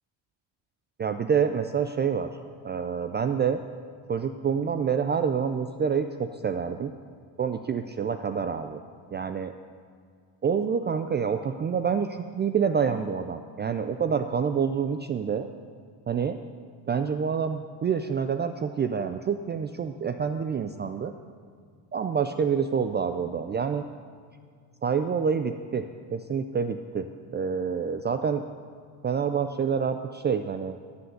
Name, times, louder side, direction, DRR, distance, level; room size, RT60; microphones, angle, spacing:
voice 1, 1.0-2.3 2.6-3.6 4.1-6.9 7.4-8.8 9.1-9.5 10.4-15.5 16.1-16.4 16.9-21.1 21.9-23.8 24.8-28.4 29.0-30.8, right 6 dB, 25° right, 8 dB, 0.3 m, -27 dB
13.5 x 7.9 x 6.5 m, 2.1 s
cardioid pair, 110°, 46 cm